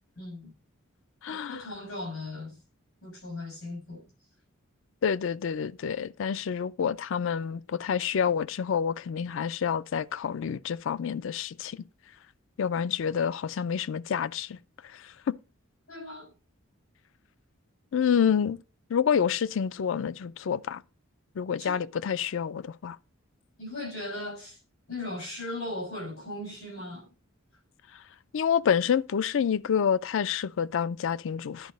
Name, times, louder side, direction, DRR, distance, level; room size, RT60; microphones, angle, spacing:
voice 1, 0.2-0.5 1.3-2.6 3.0-4.0 15.9-16.3 21.6-21.8 23.6-24.6 24.9-27.1, left 1 dB, 90° left, 6.3 m, -38 dB
voice 2, 1.2-1.7 5.0-11.8 12.6-14.6 14.8-15.4 17.9-18.6 18.9-20.8 21.4-23.0 28.3-31.7, left 7 dB, 65° left, 0.4 m, -28 dB
10.5 x 4.8 x 5.2 m
head